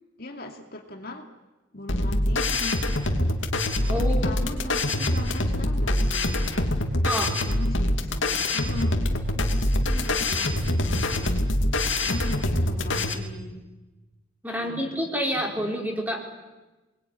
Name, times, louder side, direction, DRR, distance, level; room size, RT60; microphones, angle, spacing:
voice 1, 0.2-1.3 1.7-3.0 3.8-6.7 7.3-9.0 9.3-11.3 12.0-13.7 14.5-15.0 15.3-15.8, left 2 dB, 50° left, 3 dB, 2.7 m, -39 dB
sound 1, 1.9-13.1, left 1 dB, 75° left, 2.6 m, -24 dB
voice 2, 3.9-4.8 7.0-7.3 14.4-16.2, equal, 10° right, 0 dB, 4.7 m, -29 dB
28.5 x 21.0 x 10.0 m, 1.2 s
head